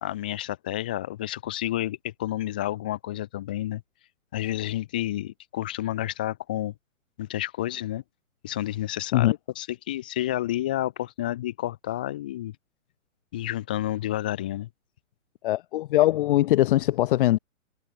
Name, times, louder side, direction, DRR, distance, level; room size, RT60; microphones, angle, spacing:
voice 1, 0.0-3.8 4.3-6.7 7.2-8.0 8.4-12.6 13.3-14.7, left 14 dB, 5° left, 0.4 m, -30 dB
voice 2, 15.4-17.4, left 15 dB, 40° left, 2.6 m, -21 dB
hypercardioid pair, 150°, 42 cm